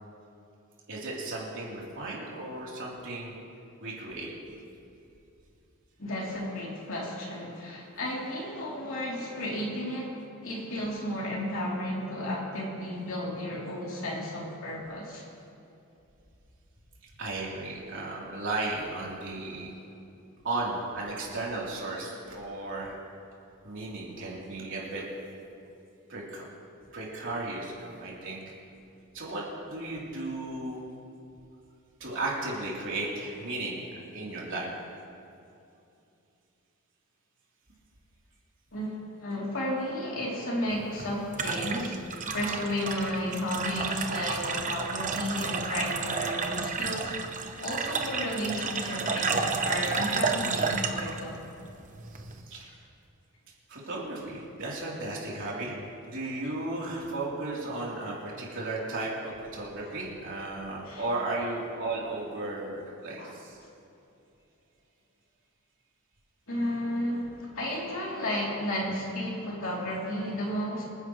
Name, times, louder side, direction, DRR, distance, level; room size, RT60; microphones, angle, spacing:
voice 1, 0.9-3.3 3.8-4.3 17.2-19.7 20.4-23.0 23.6-25.0 26.1-26.4 26.9-28.5 29.1-30.8 32.0-33.9 34.1-34.7 52.1-52.8 53.7-63.6, right 2 dB, 60° right, -5 dB, 3.7 m, -35 dB
voice 2, 6.0-15.2 38.7-51.4 59.8-59.9 60.8-61.0 63.2-63.3 66.5-70.8, left 1 dB, 65° left, -4 dB, 3.4 m, -33 dB
sound 1, 40.7-52.4, right 5 dB, 35° right, 0.9 m, -31 dB
26.0 x 10.5 x 3.2 m, 2.7 s
head